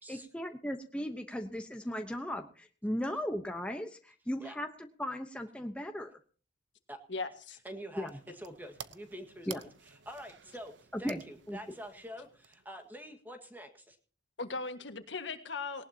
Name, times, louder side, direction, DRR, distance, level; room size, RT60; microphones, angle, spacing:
voice 1, 0.1-4.7 5.0-6.1 8.0-8.1 9.5-9.6 10.9-11.2 11.5-11.6, equal, 5° left, 5 dB, 1.0 m, -36 dB
voice 2, 7.1-7.6 14.4-15.9, left 4 dB, 80° left, 7 dB, 1.8 m, -38 dB
voice 3, 7.6-9.6 10.0-14.0, equal, 10° right, 6 dB, 1.8 m, -46 dB
sound 1, 7.6-13.0, right 8 dB, 75° right, 0.9 m, -52 dB
18.5 x 18.5 x 2.9 m, 0.39 s
head